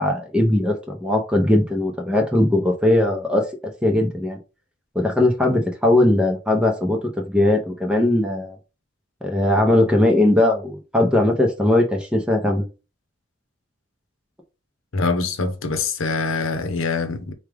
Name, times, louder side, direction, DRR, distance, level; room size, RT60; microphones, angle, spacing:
voice 1, 0.0-3.5 3.8-4.4 4.9-7.0 7.3-8.6 9.2-12.6, left 1 dB, 5° right, 0.7 m, -19 dB
voice 2, 14.9-17.3, left 4 dB, 90° left, 0.7 m, -24 dB
4.8 x 2.3 x 3.3 m
head